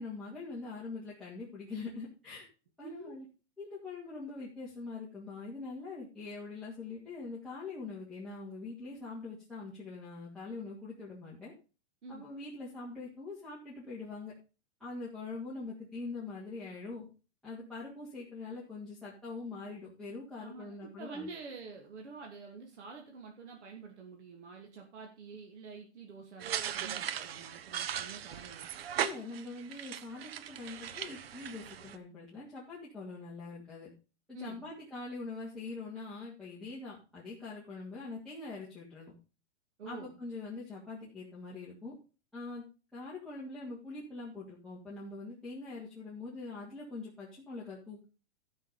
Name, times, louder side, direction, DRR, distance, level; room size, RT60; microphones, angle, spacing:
voice 1, 0.0-2.5 2.8-3.2 3.6-11.5 12.1-14.3 14.8-17.1 17.4-21.3 29.0-33.9 34.3-39.1 39.8-41.9 42.3-42.6 42.9-48.0, left 3 dB, ahead, -9 dB, 2.3 m, -43 dB
voice 2, 2.8-3.2 12.0-12.2 20.4-28.7 34.3-34.7 39.8-40.2, right 4 dB, 75° right, 1 dB, 2.8 m, -47 dB
sound 1, 26.4-32.0, right 10 dB, 55° right, 1.0 m, -38 dB
13.0 x 6.3 x 5.2 m, 0.33 s
hypercardioid pair, 160°, 35 cm